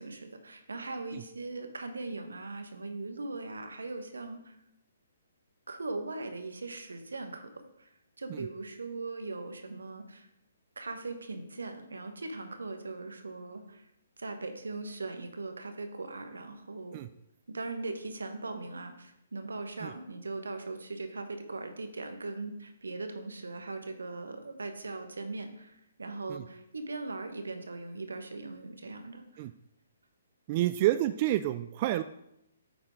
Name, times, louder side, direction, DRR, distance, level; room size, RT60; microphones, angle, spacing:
voice 1, 0.0-4.6 5.7-7.9 8.2-10.3 10.8-13.9 14.2-17.0 17.5-29.4, right 3 dB, 85° right, 7 dB, 1.2 m, -40 dB
voice 2, 30.5-32.0, right 14 dB, 35° right, 12 dB, 0.3 m, -29 dB
8.8 x 3.7 x 5.1 m, 0.80 s
hypercardioid pair, 140°, 0 cm